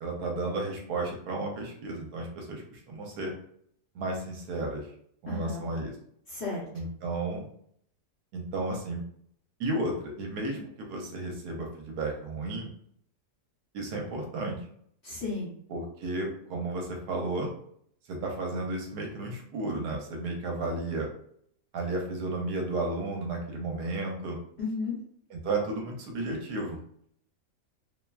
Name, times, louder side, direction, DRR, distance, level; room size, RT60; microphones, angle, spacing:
voice 1, 0.0-3.3 3.9-4.9 5.2-5.9 6.7-7.5 8.3-9.0 9.6-12.7 13.7-14.6 15.7-17.5 18.1-21.1 21.7-24.4 25.3-26.8, right 2 dB, 75° right, 0 dB, 1.2 m, -33 dB
voice 2, 5.3-5.7 6.3-6.6 15.0-15.5 24.6-25.0, left 3 dB, 50° left, -6 dB, 0.9 m, -33 dB
2.9 x 2.1 x 2.3 m, 0.65 s
omnidirectional pair, 1.8 m